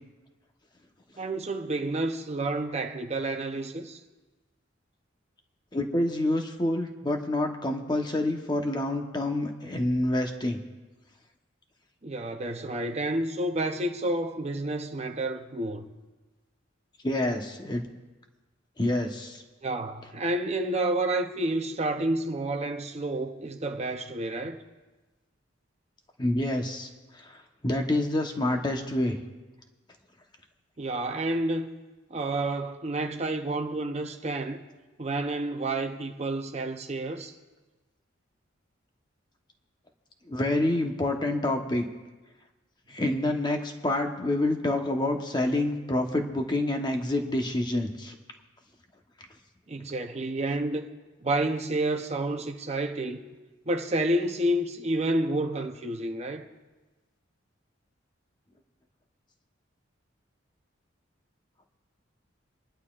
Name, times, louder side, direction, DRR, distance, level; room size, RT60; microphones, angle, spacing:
voice 1, 1.2-4.0 12.0-15.9 19.6-24.6 30.8-31.7 32.1-34.6 35.0-37.3 49.7-50.9 51.2-53.3 53.7-56.5, right 1 dB, 35° right, 0.7 m, -29 dB
voice 2, 5.7-10.6 17.0-17.8 18.8-19.4 26.2-29.2 40.3-41.9 42.9-48.1, left 1 dB, 20° left, 1.0 m, -27 dB
27.5 x 11.0 x 2.4 m
head